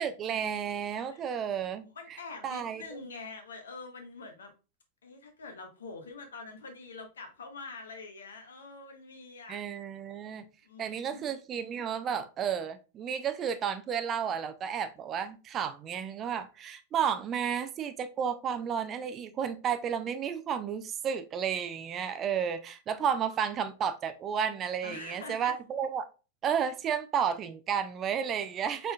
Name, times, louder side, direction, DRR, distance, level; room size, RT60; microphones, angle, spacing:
voice 1, 0.0-1.9 2.4-2.8 9.5-10.4 10.8-26.1 26.4-28.9, right 8 dB, 30° right, 0.5 m, -32 dB
voice 2, 1.1-1.4 1.9-4.5 5.0-9.6 10.6-11.3 24.8-25.6, left 3 dB, 65° left, 1.0 m, -45 dB
5.4 x 3.8 x 2.3 m
figure-of-eight pair, 90°, 0 cm